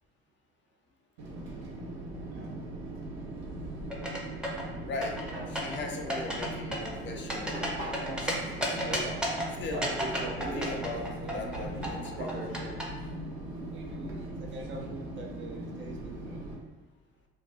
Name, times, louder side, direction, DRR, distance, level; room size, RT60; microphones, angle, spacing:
Fixed-wing aircraft airplane, 1.2-16.5, right 1 dB, 80° right, 0.7 m, -38 dB
sound 1, 3.9-4.7 5.0-5.8 6.1-6.5 6.7-8.3 8.6-9.5 9.8-12.8, equal, 5° right, 0.7 m, -32 dB
voice 1, 4.9-5.2 5.5-9.1 9.6-9.9 10.4-12.5, left 3 dB, 40° left, 2 dB, 0.5 m, -39 dB
voice 2, 13.7-16.4, right 1 dB, 40° right, 1 dB, 0.6 m, -44 dB
2.5 x 2.2 x 3.7 m, 1.2 s
figure-of-eight pair, 50°, 30 cm